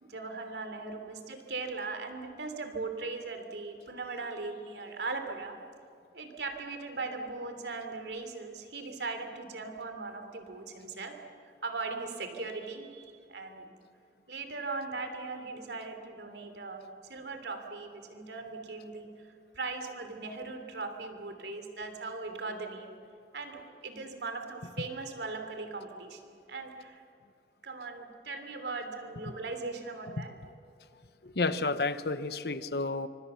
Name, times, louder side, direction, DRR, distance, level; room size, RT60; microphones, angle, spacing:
voice 1, 0.0-5.6 6.1-11.2 11.6-13.7 14.3-16.8 17.1-19.3 19.5-22.9 23.3-26.2 26.5-27.0 27.6-30.4, right 3 dB, 70° right, 6 dB, 3.2 m, -39 dB
voice 2, 31.2-33.1, left 3 dB, 60° left, 12 dB, 1.0 m, -31 dB
25.5 x 24.5 x 7.0 m, 2.5 s
head